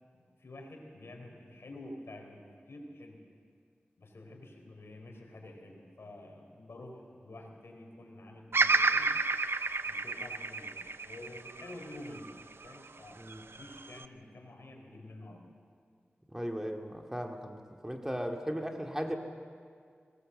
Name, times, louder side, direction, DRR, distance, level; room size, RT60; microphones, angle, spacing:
voice 1, 0.1-3.2 4.0-9.1 9.8-12.3 12.6-15.6, left 1 dB, 80° left, 2 dB, 3.9 m, -49 dB
Bird vocalization bird call bird song, 8.5-12.8 13.3-14.1, right 3 dB, 70° right, 0.7 m, -30 dB
voice 2, 16.3-19.2, equal, 10° right, 2 dB, 2.3 m, -37 dB
22.0 x 19.0 x 7.8 m, 2.1 s
wide cardioid pair, 45°, 4 cm